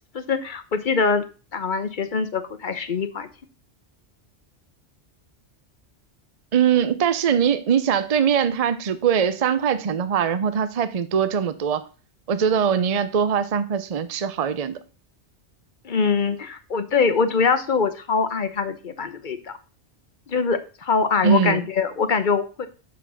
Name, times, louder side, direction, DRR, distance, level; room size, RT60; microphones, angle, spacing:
voice 1, 0.1-1.2 1.5-3.3 15.8-19.5 20.3-22.7, left 5 dB, 45° left, 0.9 m, -23 dB
voice 2, 6.5-11.8 12.3-14.7 21.2-21.6, right 7 dB, 40° right, 0.7 m, -21 dB
6.1 x 5.8 x 6.1 m
omnidirectional pair, 1.2 m